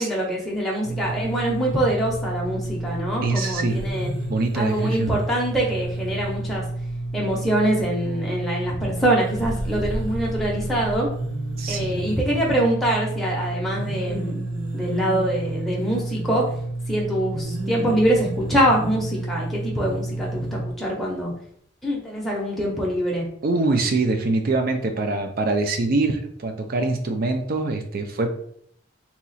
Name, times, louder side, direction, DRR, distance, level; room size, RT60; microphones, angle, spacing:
voice 1, 0.0-4.1 4.5-6.6 7.1-11.1 11.7-14.4 14.7-16.4 16.9-21.3 21.8-23.3, right 1 dB, ahead, -4 dB, 0.7 m, -24 dB
sound 1, 0.8-20.7, right 1 dB, 70° right, 0.9 m, -30 dB
voice 2, 3.2-4.0 4.3-5.2 11.6-12.3 23.4-28.3, right 3 dB, 50° right, 6 dB, 0.5 m, -24 dB
2.8 x 2.3 x 4.0 m, 0.64 s
head